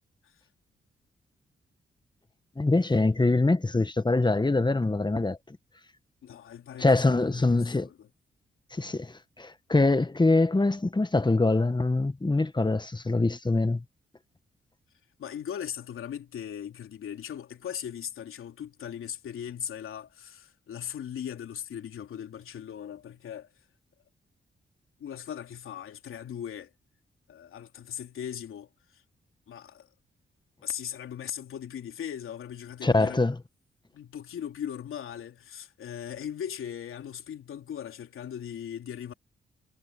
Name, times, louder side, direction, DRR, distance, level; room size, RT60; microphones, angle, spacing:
voice 1, 2.6-5.4 6.8-7.9 8.7-13.8 32.8-33.3, left 2 dB, 20° left, 1.6 m, -24 dB
voice 2, 6.2-8.1 15.2-23.5 25.0-26.7 27.3-29.0 29.5-29.9 30.6-33.3 33.9-39.1, left 9 dB, 75° left, 3.5 m, -39 dB
supercardioid pair, 45°, 21 cm